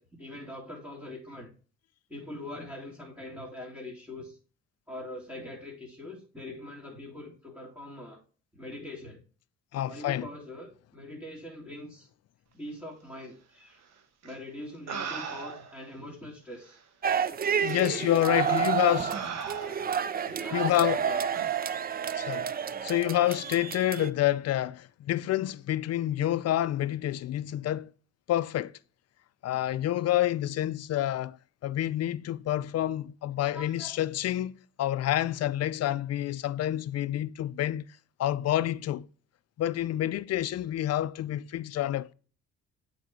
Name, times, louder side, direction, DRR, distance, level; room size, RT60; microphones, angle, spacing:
voice 1, 0.0-1.5 2.1-4.4 4.9-8.2 8.5-9.2 9.9-12.1 12.5-13.8 14.2-16.8 18.1-19.2 20.2-21.2 33.4-34.0, left 1 dB, 10° right, 2.6 m, -43 dB
voice 2, 9.7-10.3 17.6-19.1 20.2-21.0 22.1-22.5 22.8-27.9 28.3-28.7 29.4-31.4 31.6-37.8 38.2-39.1 39.6-42.1, left 13 dB, 55° left, 0.5 m, -28 dB
sound 1, 14.2-14.4 14.9-15.8 16.7-16.8 17.6-17.8 18.5-18.7 19.1-20.1 21.4-21.6, right 6 dB, 60° right, 1.1 m, -38 dB
sound 2, 17.0-24.1, right 7 dB, 30° right, 0.4 m, -30 dB
8.3 x 4.3 x 3.7 m
cardioid pair, 90°, 30 cm